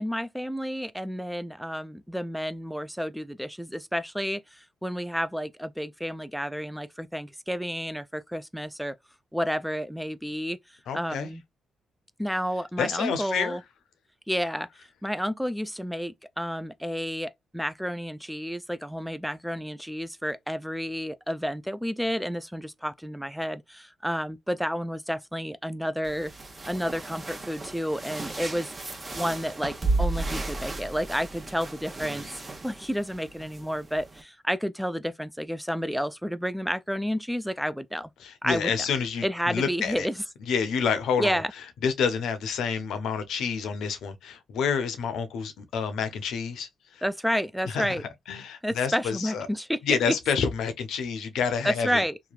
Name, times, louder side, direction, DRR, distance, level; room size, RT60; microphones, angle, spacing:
voice 1, 0.0-8.9 9.3-10.6 10.9-11.4 12.2-13.6 14.3-26.3 26.7-28.7 29.1-32.3 32.6-38.1 38.4-38.7 39.2-40.2 41.2-41.5 47.0-48.0 48.6-49.8 50.1-50.2 51.6-52.2, equal, ahead, 0.3 m, -30 dB
voice 2, 10.9-11.3 12.8-13.6 38.2-40.1 40.5-41.4 41.8-47.0 47.7-47.9 48.3-49.5 49.8-52.0, left 6 dB, 80° left, 0.6 m, -28 dB
sound 1, 26.0-34.2, right 3 dB, 30° right, 0.8 m, -34 dB
3.0 x 2.2 x 2.3 m
supercardioid pair, 65°, 0 cm